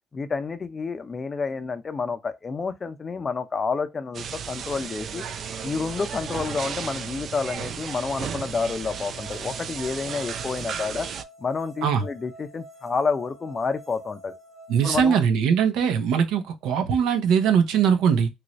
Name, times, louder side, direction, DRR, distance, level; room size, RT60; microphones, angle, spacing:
voice 1, 0.1-5.2 5.6-11.1 11.4-14.3 14.8-15.2, left 4 dB, 25° left, 0.5 m, -29 dB
sound 1, 4.1-11.2, right 7 dB, 45° right, 0.4 m, -34 dB
sound 2, 8.5-14.9, right 1 dB, 5° right, 0.8 m, -47 dB
voice 2, 14.7-18.3, right 7 dB, 80° right, 0.7 m, -21 dB
3.1 x 2.6 x 3.0 m
cardioid pair, 130°, 0 cm